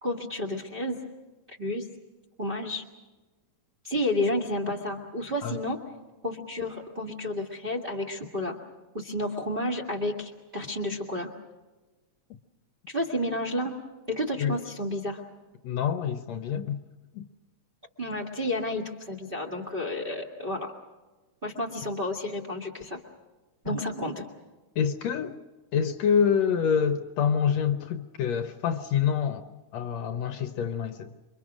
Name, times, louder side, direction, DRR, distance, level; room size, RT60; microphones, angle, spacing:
voice 1, 0.0-1.0 1.5-1.9 2.4-2.8 3.8-5.8 6.2-8.6 8.9-11.3 12.9-13.7 14.1-15.2 18.0-20.7 21.4-23.0 23.6-24.2, left 1 dB, 20° right, 1 dB, 1.5 m, -31 dB
voice 2, 15.6-16.8 17.1-17.2 23.7-23.8 24.8-25.3 25.7-29.5 29.7-31.1, left 7 dB, 70° left, 9 dB, 1.9 m, -26 dB
28.0 x 24.0 x 6.2 m, 1.2 s
omnidirectional pair, 3.5 m